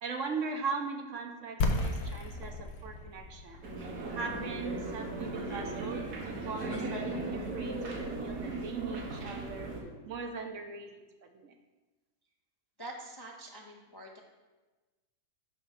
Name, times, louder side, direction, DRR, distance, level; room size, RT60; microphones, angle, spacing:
voice 1, 0.0-3.6 4.1-9.7 10.1-11.0 11.3-11.5, right 4 dB, 60° right, 4 dB, 1.0 m, -39 dB
sound 1, 1.6-7.3, left 2 dB, 80° left, 1.3 m, -36 dB
sound 2, 3.6-9.8, right 2 dB, 85° right, 1.9 m, -37 dB
voice 2, 12.8-14.2, right 1 dB, 25° left, -1 dB, 0.5 m, -45 dB
10.5 x 3.6 x 5.8 m, 1.2 s
omnidirectional pair, 1.6 m